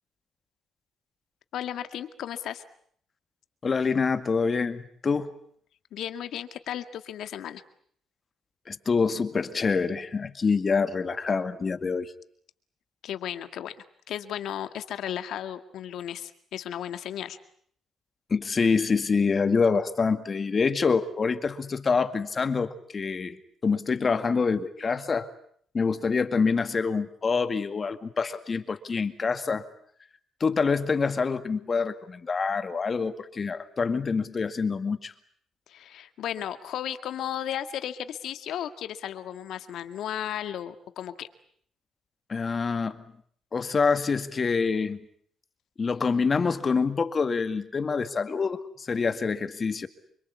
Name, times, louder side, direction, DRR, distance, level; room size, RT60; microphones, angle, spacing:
voice 1, 1.5-2.6 5.9-7.6 13.0-13.8 14.1-17.4 35.7-41.3, left 10 dB, 75° left, 10 dB, 2.0 m, -34 dB
voice 2, 3.6-5.3 8.7-12.1 18.3-25.3 25.7-29.6 30.4-35.1 42.3-43.0 43.5-45.0 45.8-49.9, left 5 dB, 35° left, 10 dB, 2.1 m, -26 dB
27.0 x 24.5 x 8.5 m, 0.64 s
cardioid pair, 90°, 0 cm